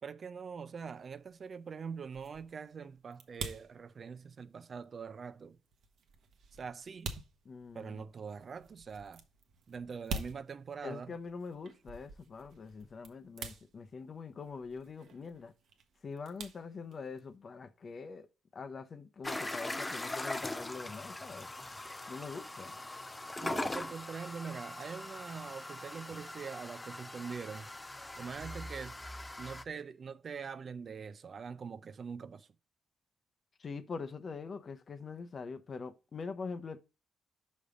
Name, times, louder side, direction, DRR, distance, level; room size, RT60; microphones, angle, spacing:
voice 1, 0.0-5.6 6.6-7.2 7.7-9.2 9.7-11.1 23.4-27.7 28.2-29.0 29.4-32.5, right 6 dB, 50° right, 0.5 m, -43 dB
sound 1, 0.9-17.4, right 4 dB, 70° right, 1.0 m, -48 dB
voice 2, 7.5-8.0 10.8-15.5 16.0-18.3 18.5-21.5 22.1-22.7 33.6-36.8, left 4 dB, 45° left, 0.8 m, -44 dB
sound 2, 19.2-29.6, left 2 dB, 15° left, 0.5 m, -41 dB
sound 3, 27.5-29.8, right 1 dB, 15° right, 1.7 m, -50 dB
5.4 x 5.2 x 4.9 m
cardioid pair, 70°, 0 cm